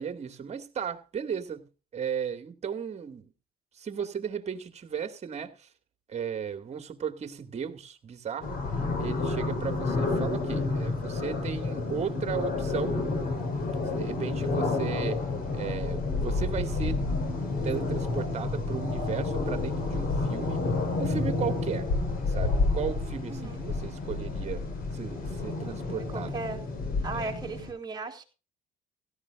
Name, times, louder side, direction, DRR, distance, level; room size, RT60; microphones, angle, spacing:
voice 1, 0.0-1.7 1.9-3.3 3.7-5.7 6.1-8.6 9.0-13.0 13.9-15.2 15.5-17.0 17.6-20.6 21.0-21.9 22.3-24.6 24.9-26.4 27.1-27.3, right 7 dB, 40° right, 2.4 m, -35 dB
sound 1, 8.4-27.7, left 3 dB, 60° left, 5.2 m, -30 dB
voice 2, 23.3-23.7 25.9-26.6 27.0-28.2, right 3 dB, 25° right, 3.8 m, -36 dB
16.5 x 15.0 x 2.6 m
cardioid pair, 110°, 17 cm